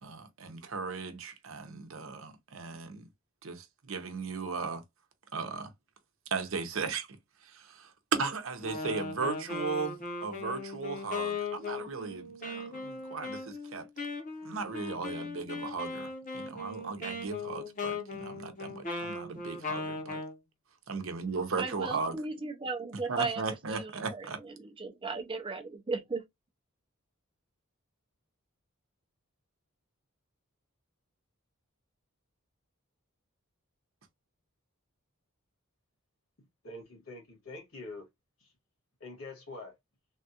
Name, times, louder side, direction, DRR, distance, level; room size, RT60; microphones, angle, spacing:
voice 1, 0.0-3.1 3.4-4.8 5.3-5.7 6.3-7.1 7.4-13.9 14.4-20.2 20.9-22.2 23.1-24.4, right 4 dB, 70° right, 0.7 m, -36 dB
Wind instrument woodwind instrument, 8.6-20.4, left 3 dB, 35° left, 0.8 m, -38 dB
voice 2, 21.6-23.4 23.7-26.2, right 4 dB, 25° right, 0.5 m, -36 dB
voice 3, 36.6-38.1 38.4-38.5 39.0-39.8, left 2 dB, 75° left, 1.8 m, -45 dB
3.4 x 2.3 x 2.7 m
head